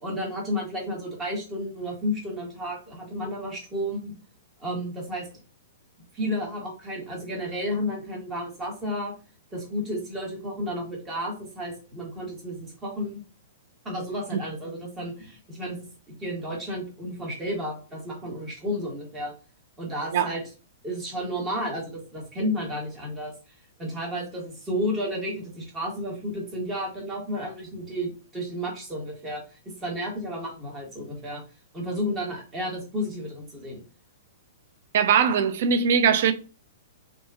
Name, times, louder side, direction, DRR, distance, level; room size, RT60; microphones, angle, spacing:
voice 1, 0.0-4.1 4.6-5.3 6.1-9.1 9.5-13.2 13.8-19.3 19.8-20.4 20.8-23.5 23.8-31.4 31.7-33.8, equal, 20° right, 1.2 m, -32 dB
voice 2, 34.9-36.3, right 7 dB, 55° right, 0.3 m, -21 dB
2.7 x 2.6 x 2.3 m
figure-of-eight pair, 110°, 0 cm